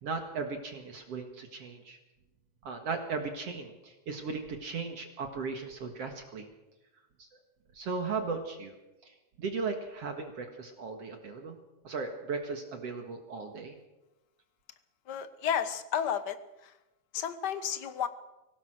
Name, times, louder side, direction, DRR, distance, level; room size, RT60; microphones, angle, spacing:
voice 1, 0.0-2.0 2.6-6.5 7.2-7.3 7.7-8.7 9.0-11.6 11.8-13.8, right 4 dB, 55° right, 4 dB, 2.6 m, -37 dB
voice 2, 15.1-16.4 16.6-16.7 17.1-18.1, left 8 dB, 55° left, 11 dB, 1.2 m, -32 dB
24.0 x 18.5 x 6.4 m, 1.0 s
omnidirectional pair, 3.4 m